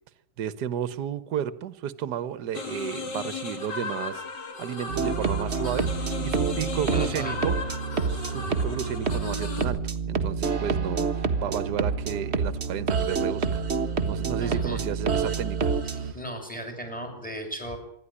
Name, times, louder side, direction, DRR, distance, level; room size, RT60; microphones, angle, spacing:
voice 1, 0.4-7.5 8.1-9.8 10.1-13.6 14.1-16.1, right 9 dB, 70° right, 14 dB, 1.6 m, -33 dB
sound 1, 2.5-9.6, left 3 dB, 85° left, 3.3 m, -35 dB
sound 2, 4.9-16.1, right 5 dB, 40° right, 1.6 m, -28 dB
voice 2, 6.2-6.6 6.9-7.5 14.4-15.1 15.8-17.8, equal, 5° left, 5 dB, 6.4 m, -37 dB
25.5 x 12.0 x 10.0 m, 0.69 s
omnidirectional pair, 1.8 m